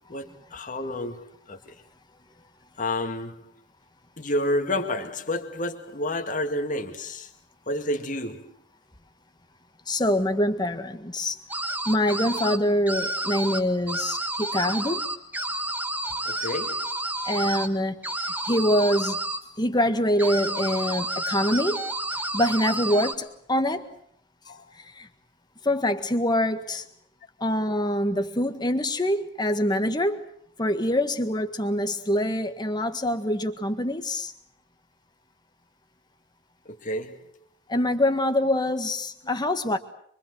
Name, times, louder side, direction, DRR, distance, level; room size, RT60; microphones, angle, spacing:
voice 1, 0.1-1.7 2.8-3.4 4.2-7.3 7.7-8.5 16.3-16.9 24.5-24.6 36.7-37.2, left 1 dB, 45° left, 2.2 m, -30 dB
voice 2, 9.9-11.4 11.9-15.0 17.2-18.0 18.3-19.2 19.6-21.8 22.3-23.9 24.8-25.1 25.6-26.9 27.4-30.3 30.6-34.3 37.7-39.8, left 1 dB, 25° left, 1.7 m, -25 dB
sound 1, 11.5-12.6 12.9-13.6 13.9-17.7 18.0-19.4 20.2-23.1, right 1 dB, 10° right, 1.9 m, -30 dB
25.0 x 24.0 x 8.0 m
head